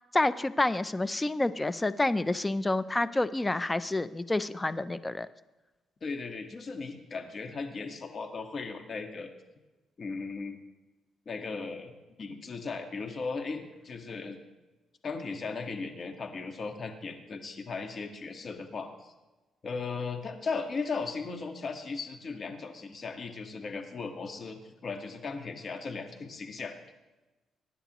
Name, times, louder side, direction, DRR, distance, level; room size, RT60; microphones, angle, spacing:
voice 1, 0.1-5.3, left 2 dB, 15° left, 14 dB, 0.6 m, -28 dB
voice 2, 6.0-9.3 10.0-10.6 11.2-14.4 15.0-19.1 19.6-26.8, left 4 dB, 45° left, 5 dB, 1.7 m, -37 dB
23.0 x 10.0 x 3.1 m, 1.1 s
cardioid pair, 90°, 0 cm